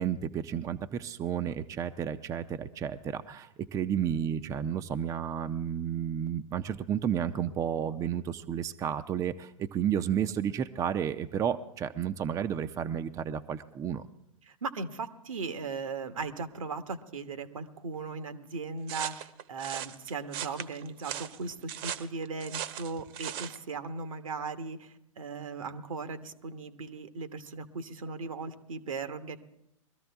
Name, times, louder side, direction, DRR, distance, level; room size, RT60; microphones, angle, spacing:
voice 1, 0.0-14.0, right 9 dB, 20° right, 10 dB, 0.5 m, -32 dB
voice 2, 14.4-29.4, right 4 dB, 80° right, 9 dB, 1.2 m, -38 dB
sound 1, 18.9-23.6, right 10 dB, 45° right, 0.8 m, -38 dB
22.0 x 13.5 x 3.5 m, 0.81 s
hypercardioid pair, 110°, 17 cm